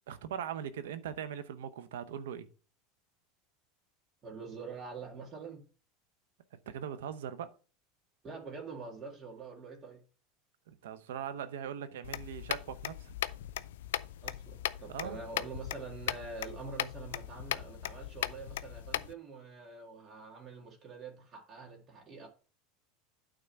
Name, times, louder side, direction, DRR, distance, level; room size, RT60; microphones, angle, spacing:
voice 1, 0.1-2.5 6.7-7.5 10.7-13.1 14.9-15.2, right 8 dB, 90° right, 0.8 m, -40 dB
voice 2, 4.2-5.6 8.2-10.0 14.2-22.3, right 4 dB, 30° right, 1.9 m, -45 dB
sound 1, 12.0-19.1, left 13 dB, 85° left, 0.4 m, -38 dB
8.9 x 3.7 x 5.7 m
supercardioid pair, 120°, 0 cm